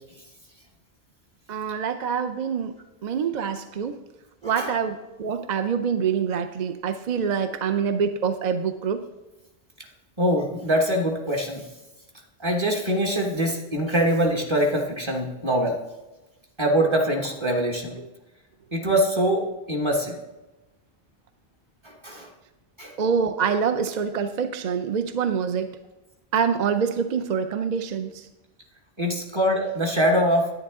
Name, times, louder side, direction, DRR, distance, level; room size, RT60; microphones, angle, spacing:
voice 1, 1.5-2.8 3.0-3.9 4.4-9.0 23.0-25.7 26.3-28.2, right 6 dB, 55° right, 9 dB, 0.5 m, -25 dB
voice 2, 10.2-11.6 12.4-15.8 16.6-18.0 18.7-20.2 21.8-22.3 22.8-22.9 29.0-30.5, equal, 25° right, 0 dB, 1.2 m, -23 dB
10.0 x 9.3 x 3.6 m, 1.0 s
omnidirectional pair, 1.1 m